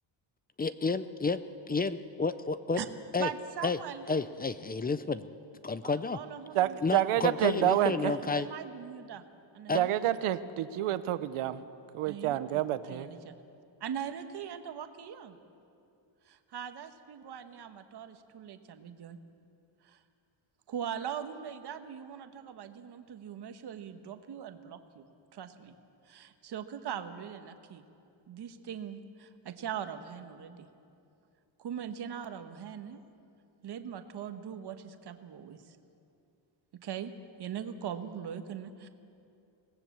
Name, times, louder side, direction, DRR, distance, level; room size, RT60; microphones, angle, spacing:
voice 1, 0.6-1.4 1.7-2.8 3.1-3.3 3.6-3.8 4.1-5.3 5.6-6.2 6.8-8.5 9.7-9.8, left 4 dB, 20° left, 13 dB, 0.5 m, -30 dB
voice 2, 3.2-4.2 5.8-9.2 9.5-10.0 12.0-12.6 12.9-13.3 13.8-15.4 16.2-19.2 19.8-20.0 20.7-25.1 25.3-25.7 26.1-27.8 28.3-30.7 31.6-33.0 33.6-35.8 36.8-37.1 37.4-38.9, right 8 dB, 50° right, 8 dB, 1.4 m, -41 dB
voice 3, 6.5-8.1 9.7-11.6 11.9-13.1, right 12 dB, 85° right, 13 dB, 1.0 m, -28 dB
25.0 x 18.5 x 7.3 m, 2.6 s
cardioid pair, 140°, 49 cm